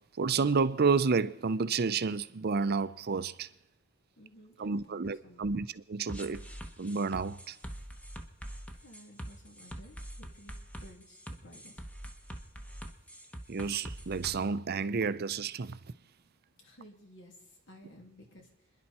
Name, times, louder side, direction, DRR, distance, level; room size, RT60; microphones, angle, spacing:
voice 1, 0.2-3.5 4.6-6.4 6.8-7.6 13.5-15.8, right 5 dB, 50° right, 0.5 m, -30 dB
voice 2, 4.2-5.7 8.7-10.5 10.8-11.8 16.6-18.9, equal, 65° left, 2.8 m, -55 dB
sound 1, 6.1-14.4, equal, 5° left, 1.0 m, -44 dB
29.5 x 11.0 x 4.3 m
head